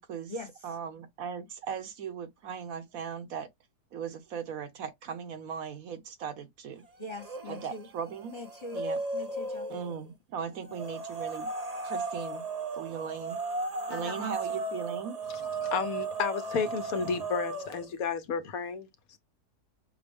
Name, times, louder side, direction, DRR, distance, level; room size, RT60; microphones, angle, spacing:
voice 1, 0.0-0.3 0.6-3.5 3.9-6.8 7.5-8.3 8.7-9.0 9.7-11.5 11.8-12.4 12.8-13.4 13.9-15.2, right 7 dB, 65° right, 1.2 m, -38 dB
voice 2, 7.0-7.9 8.3-8.8 9.1-9.7 13.9-14.6, left 1 dB, 25° left, 0.7 m, -41 dB
sound 1, 7.2-7.8 8.1-9.9 10.7-17.9, right 3 dB, 35° right, 0.7 m, -36 dB
voice 3, 15.3-19.2, left 5 dB, 70° left, 1.1 m, -32 dB
6.1 x 2.0 x 3.4 m
omnidirectional pair, 1.6 m